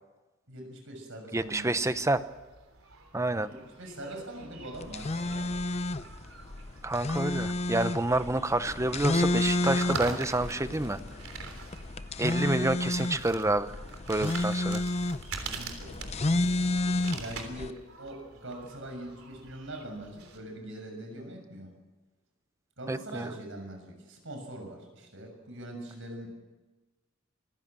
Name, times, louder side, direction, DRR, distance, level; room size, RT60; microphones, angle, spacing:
voice 1, 0.5-2.0 3.8-5.5 15.4-16.0 17.2-21.7 22.8-26.4, right 1 dB, 65° right, 4 dB, 6.8 m, -42 dB
voice 2, 1.3-2.2 3.1-3.5 6.8-11.0 12.2-13.7 14.1-14.8 22.9-23.3, right 2 dB, 15° right, 12 dB, 0.8 m, -28 dB
sound 1, 1.4-20.4, right 4 dB, 90° right, 3.5 m, -45 dB
sound 2, 4.7-17.7, left 2 dB, 30° left, 0.6 m, -31 dB
26.0 x 16.0 x 7.6 m, 1.2 s
head